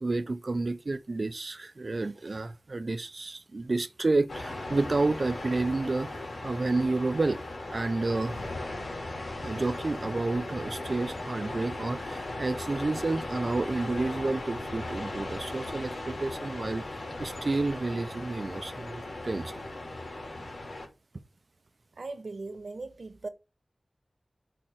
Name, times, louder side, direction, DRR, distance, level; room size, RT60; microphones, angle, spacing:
voice 1, 0.0-7.4 7.7-8.5 9.4-16.8 17.2-19.6, right 3 dB, 60° right, 0.7 m, -30 dB
sound 1, 4.3-20.9, left 2 dB, 85° left, 3.1 m, -37 dB
voice 2, 22.0-23.3, right 3 dB, 75° right, 1.3 m, -39 dB
8.9 x 4.5 x 6.3 m
wide cardioid pair, 60°, 0 cm